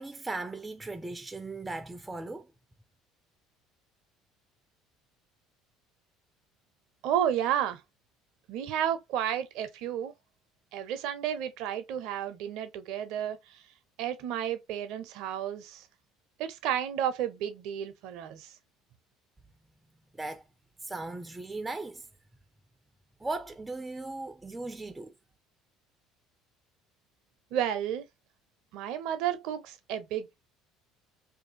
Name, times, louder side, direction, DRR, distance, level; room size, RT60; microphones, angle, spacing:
voice 1, 0.0-2.5 20.1-20.4 20.8-22.1 23.2-25.1, right 2 dB, 15° right, 0.3 m, -37 dB
voice 2, 7.0-7.8 8.5-10.1 10.7-13.4 14.0-15.8 16.4-18.5 27.5-28.0 28.7-30.3, right 10 dB, 70° right, 0.5 m, -32 dB
2.5 x 2.4 x 2.6 m
supercardioid pair, 80°, 0 cm